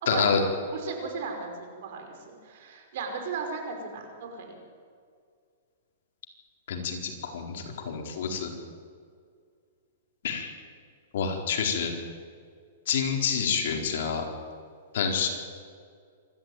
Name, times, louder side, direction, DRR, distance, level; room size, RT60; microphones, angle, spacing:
voice 1, 0.1-0.4 6.7-8.5 10.2-10.5 11.1-11.9 12.9-14.2 14.9-15.3, left 6 dB, 65° left, 2 dB, 4.4 m, -28 dB
voice 2, 0.7-4.6, right 4 dB, 60° right, 3 dB, 5.2 m, -36 dB
26.5 x 12.5 x 9.3 m, 2.1 s
hypercardioid pair, 150°, 0 cm